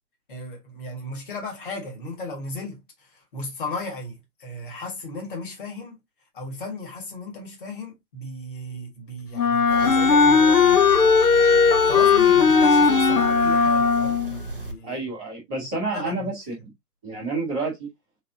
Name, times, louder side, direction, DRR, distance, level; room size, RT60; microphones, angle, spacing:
voice 1, 0.3-6.0 6.3-10.9 11.9-15.0 15.9-16.3, left 2 dB, 30° left, 1.9 m, -35 dB
Wind instrument woodwind instrument, 9.4-14.4, left 5 dB, 65° left, 0.7 m, -18 dB
sound 1, 9.7-14.7, left 2 dB, 35° right, 0.4 m, -28 dB
voice 2, 14.8-16.4 17.0-17.9, right 3 dB, 5° right, 0.7 m, -29 dB
4.0 x 4.0 x 2.7 m
figure-of-eight pair, 140°, 49 cm